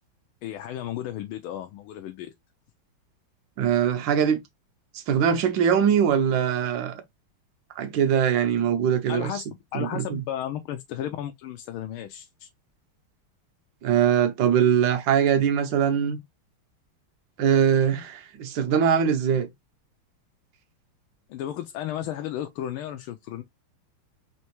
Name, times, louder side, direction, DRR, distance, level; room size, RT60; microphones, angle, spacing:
voice 1, 0.4-2.3 9.1-9.4 9.7-12.5 21.3-23.4, left 11 dB, 80° left, 1.4 m, -34 dB
voice 2, 3.6-4.4 5.1-6.9 7.8-9.4 9.7-10.2 13.8-16.2 17.4-19.5, right 8 dB, 65° right, 1.5 m, -22 dB
4.5 x 3.0 x 2.9 m
omnidirectional pair, 2.4 m